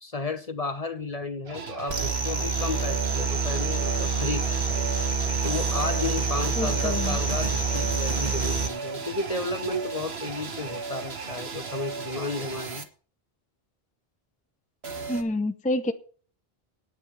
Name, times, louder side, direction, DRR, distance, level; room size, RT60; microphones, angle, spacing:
voice 1, 0.0-4.9 5.4-12.9, left 3 dB, 40° left, 0.9 m, -33 dB
sound 1, 1.4-12.8 14.8-15.2, right 4 dB, 80° right, 1.6 m, -36 dB
sound 2, 1.9-8.7, right 4 dB, 45° right, 1.5 m, -27 dB
voice 2, 6.6-7.2 15.1-15.9, left 1 dB, 10° left, 0.7 m, -28 dB
9.6 x 9.3 x 6.7 m
omnidirectional pair, 1.0 m